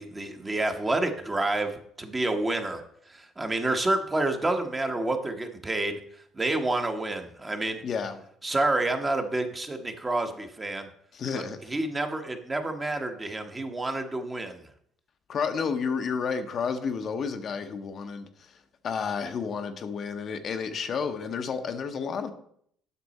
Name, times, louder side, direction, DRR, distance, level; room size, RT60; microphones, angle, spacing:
voice 1, 0.0-2.8 3.1-6.0 6.3-7.8 8.4-10.9 11.3-14.6, right 2 dB, 20° right, 1.2 m, -29 dB
voice 2, 7.8-8.2 11.1-11.8 15.3-18.6 18.8-22.3, left 6 dB, 50° left, 0.8 m, -31 dB
8.1 x 6.1 x 4.2 m
supercardioid pair, 80°, 0 cm